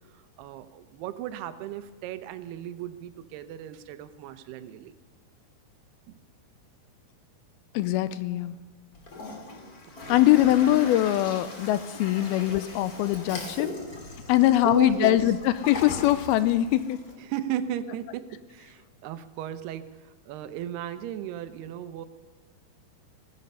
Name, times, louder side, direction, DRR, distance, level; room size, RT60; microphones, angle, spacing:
voice 1, 0.1-4.9 10.1-10.2 14.7-15.2 17.2-22.1, right 11 dB, 85° right, 12 dB, 2.9 m, -35 dB
voice 2, 7.7-8.6 10.1-13.7 14.3-17.0, left 14 dB, 80° left, 14 dB, 2.4 m, -22 dB
Toilet flush, 8.9-17.1, left 3 dB, 30° left, 1.7 m, -40 dB
16.5 x 15.0 x 5.5 m, 1.4 s
omnidirectional pair, 4.5 m